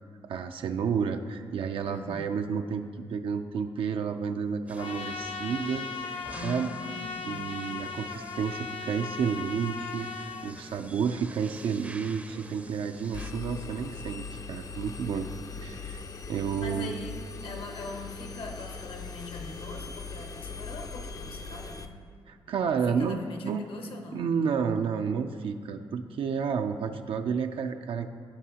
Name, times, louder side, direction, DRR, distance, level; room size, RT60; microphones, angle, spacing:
voice 1, 0.2-6.7 7.2-15.3 15.6-16.0 16.3-16.9 22.3-23.7 24.1-28.1, right 6 dB, 70° right, 6 dB, 0.4 m, -31 dB
voice 2, 1.8-2.3 6.3-7.5 15.1-15.3 16.6-22.0 22.9-24.3, left 3 dB, 65° left, 4 dB, 1.1 m, -42 dB
sound 1, 4.7-13.3, right 2 dB, 15° right, 0.5 m, -47 dB
Trumpet, 4.8-10.5, left 5 dB, 85° left, 0.5 m, -38 dB
Engine, 13.1-21.9, left 4 dB, 40° left, 0.5 m, -40 dB
16.0 x 5.4 x 2.9 m, 2.1 s
cardioid pair, 100°, 9 cm